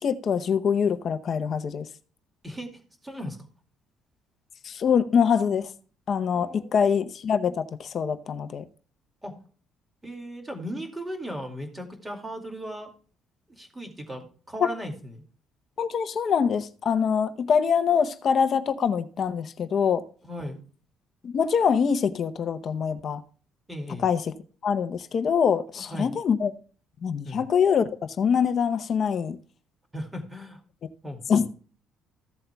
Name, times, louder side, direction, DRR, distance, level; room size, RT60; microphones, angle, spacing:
voice 1, 0.0-1.9 4.6-5.7 6.1-8.6 14.6-14.7 15.8-20.0 21.2-23.2 24.0-24.3 24.6-26.5 27.0-29.4 31.3-31.5, left 7 dB, 35° left, 0.7 m, -24 dB
voice 2, 2.4-3.4 6.3-6.9 9.2-9.3 10.0-12.9 13.5-15.2 20.2-20.6 23.7-24.1 25.8-26.1 27.2-27.5 29.9-30.6 31.0-31.4, equal, 10° right, 2.3 m, -37 dB
15.0 x 7.8 x 2.3 m
cardioid pair, 165°, 0 cm